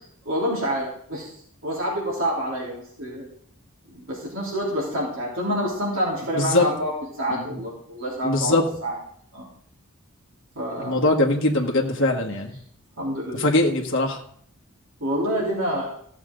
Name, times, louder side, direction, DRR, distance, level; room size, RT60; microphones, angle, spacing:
voice 1, 0.3-1.3 1.6-3.3 3.9-8.5 8.8-9.0 9.3-9.5 10.6-11.0 13.0-13.5 15.0-15.9, equal, 65° right, -5 dB, 3.4 m, -27 dB
voice 2, 6.3-6.7 7.3-7.6 8.2-8.7 10.8-12.5 13.3-14.2, left 2 dB, 60° left, 0 dB, 1.4 m, -22 dB
15.0 x 7.4 x 3.8 m, 0.63 s
head